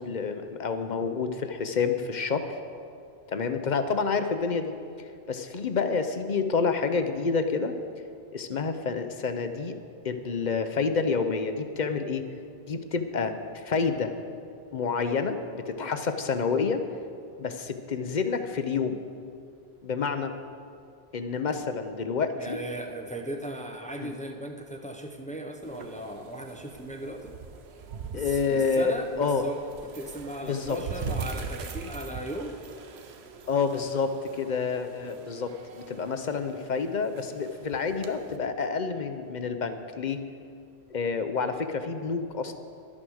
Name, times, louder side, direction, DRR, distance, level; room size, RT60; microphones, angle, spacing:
voice 1, 0.0-2.5 3.3-7.7 8.3-9.8 10.0-12.2 12.7-14.1 14.7-16.8 17.4-19.0 19.8-20.3 21.1-22.6 24.0-24.1 28.1-29.4 30.4-30.8 33.5-35.5 35.9-40.2 40.9-42.5, left 5 dB, 50° left, 8 dB, 0.8 m, -28 dB
voice 2, 22.3-27.3 28.1-32.6, right 1 dB, 10° left, 4 dB, 0.7 m, -37 dB
sound 1, 25.6-38.4, right 5 dB, 85° right, 1.1 m, -42 dB
12.0 x 9.8 x 6.3 m, 2.5 s
omnidirectional pair, 1.1 m